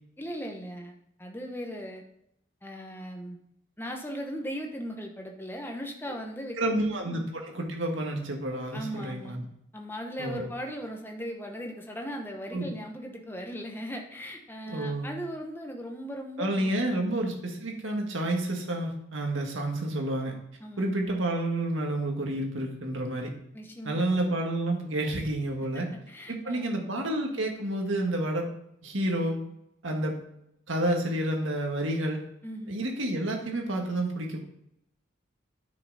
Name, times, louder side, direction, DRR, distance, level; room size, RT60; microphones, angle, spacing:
voice 1, 0.2-0.9 1.2-2.0 2.6-3.4 3.8-6.9 8.7-9.3 9.7-17.0 20.6-20.8 23.5-24.3 26.1-26.8 32.4-32.7, equal, 10° left, 2 dB, 1.0 m, -38 dB
voice 2, 6.6-9.4 10.2-10.5 12.5-12.7 14.7-15.2 16.4-20.3 20.8-23.3 23.8-25.9 26.3-28.5 28.8-29.4 29.8-30.2 30.7-32.2 32.7-34.4, right 1 dB, 75° right, 1 dB, 1.8 m, -29 dB
9.8 x 5.9 x 4.1 m, 0.77 s
head